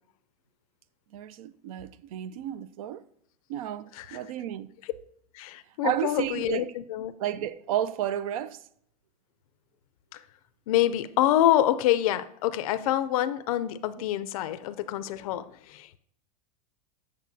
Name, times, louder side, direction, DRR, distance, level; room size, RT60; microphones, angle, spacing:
voice 1, 1.1-3.0 3.5-4.7 5.8-6.6 7.2-8.6, right 11 dB, 70° right, 0.5 m, -32 dB
voice 2, 5.3-7.1 10.1-10.2 10.7-16.0, left 12 dB, 70° left, 0.5 m, -26 dB
8.3 x 6.5 x 2.7 m
supercardioid pair, 125°, 19 cm